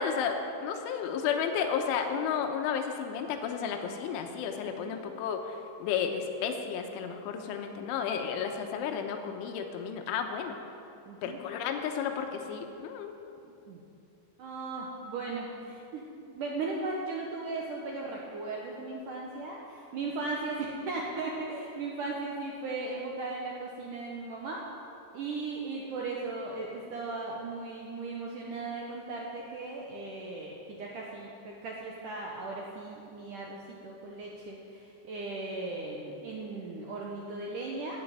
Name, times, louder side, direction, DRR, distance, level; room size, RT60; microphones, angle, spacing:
voice 1, 0.0-10.6 11.2-13.2, left 7 dB, 85° left, 5 dB, 3.5 m, -32 dB
voice 2, 11.1-11.4 13.4-13.8 14.4-24.6 25.1-38.0, right 3 dB, 75° right, -2 dB, 1.9 m, -37 dB
13.0 x 8.4 x 9.2 m, 2.7 s
omnidirectional pair, 5.5 m